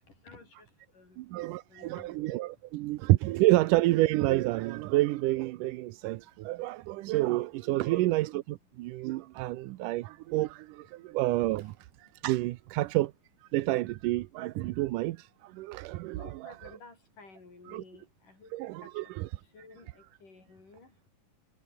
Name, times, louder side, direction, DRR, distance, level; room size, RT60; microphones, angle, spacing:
voice 1, 1.2-13.1 13.4-16.7 17.7-17.8 18.5-19.3, right 18 dB, 85° right, 2.3 m, -29 dB
voice 2, 1.7-2.3 7.7-8.1 16.2-18.5 18.8-18.9 19.5-20.9, left 3 dB, 80° left, 9.2 m, -53 dB
omnidirectional pair, 3.7 m